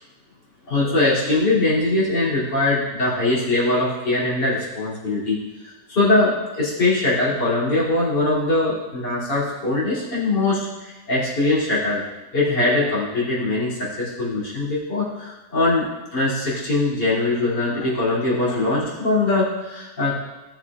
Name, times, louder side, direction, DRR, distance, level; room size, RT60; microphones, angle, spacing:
voice 1, 0.7-5.4 5.6-12.0 12.3-20.1, left 2 dB, 90° left, -7 dB, 3.5 m, -22 dB
17.0 x 7.2 x 2.4 m, 1.1 s
omnidirectional pair, 1.8 m